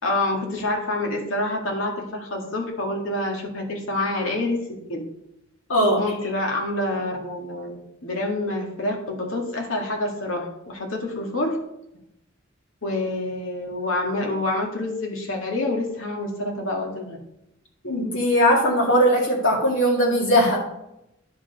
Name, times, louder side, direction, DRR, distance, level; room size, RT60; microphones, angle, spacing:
voice 1, 0.0-4.6 4.9-5.0 6.0-11.6 12.8-17.2, left 2 dB, 85° left, 1 dB, 2.0 m, -27 dB
voice 2, 5.7-6.0 17.8-20.6, equal, 70° left, -3 dB, 2.1 m, -19 dB
10.0 x 5.0 x 5.2 m, 0.83 s
head